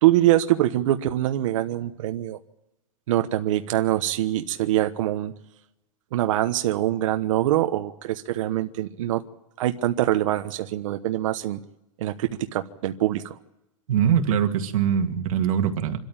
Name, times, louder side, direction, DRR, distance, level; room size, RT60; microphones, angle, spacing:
voice 1, 0.0-2.4 3.1-5.3 6.1-9.2 9.6-11.6 12.0-13.4, right 14 dB, 70° right, 7 dB, 1.1 m, -24 dB
voice 2, 13.9-16.0, right 8 dB, 85° right, 6 dB, 2.2 m, -22 dB
26.0 x 13.5 x 8.8 m, 0.93 s
supercardioid pair, 175°, 17 cm